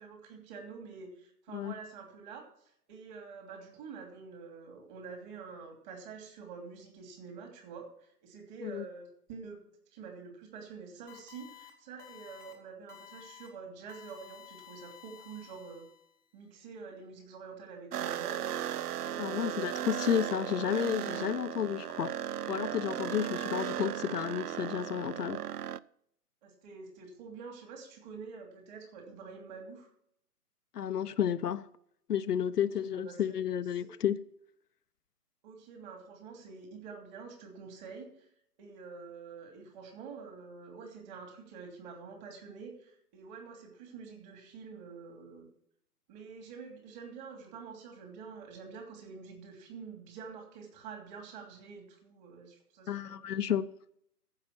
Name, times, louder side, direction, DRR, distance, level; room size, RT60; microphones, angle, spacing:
voice 1, 0.0-9.6 9.9-15.8 16.3-18.5 19.1-20.0 23.3-23.4 26.4-29.9 32.6-33.4 33.8-33.9 35.4-38.3 38.6-45.5 46.1-53.1, right 5 dB, 30° right, 3.0 m, -47 dB
sound 1, 11.1-11.7 12.0-12.5 12.9-13.5 13.9-16.2, left 12 dB, 5° left, 0.8 m, -53 dB
sound 2, 17.9-25.8, right 10 dB, 75° right, 0.6 m, -36 dB
voice 2, 19.2-22.1 22.5-25.4 30.7-31.7 32.1-34.2 52.9-53.7, left 9 dB, 75° left, 0.7 m, -31 dB
14.5 x 5.7 x 5.9 m
hypercardioid pair, 145°, 47 cm